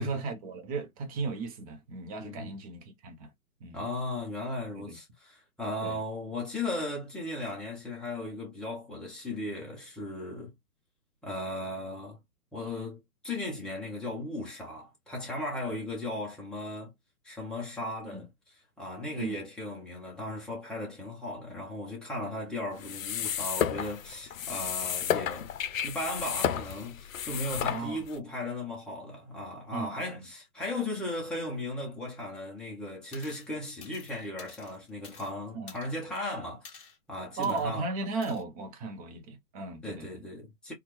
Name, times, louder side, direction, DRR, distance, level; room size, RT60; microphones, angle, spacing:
voice 1, 0.0-3.3 3.6-3.8 4.8-5.0 5.8-6.0 18.1-18.3 19.2-19.4 27.6-28.0 29.7-30.3 35.5-35.8 37.4-40.2, right 4 dB, 25° right, 0.9 m, -36 dB
voice 2, 2.2-2.5 3.7-10.5 11.2-12.2 12.5-16.9 17.2-18.3 18.8-25.5 25.8-37.9 39.8-40.7, left 1 dB, ahead, 0.7 m, -36 dB
sound 1, 22.8-28.2, left 9 dB, 60° left, 0.7 m, -32 dB
sound 2, 33.1-33.5 33.8-35.3 35.7-36.2 36.6-37.0 37.4-37.7 38.2-38.4, left 6 dB, 20° left, 1.4 m, -50 dB
4.1 x 2.4 x 3.2 m
hypercardioid pair, 145°, 46 cm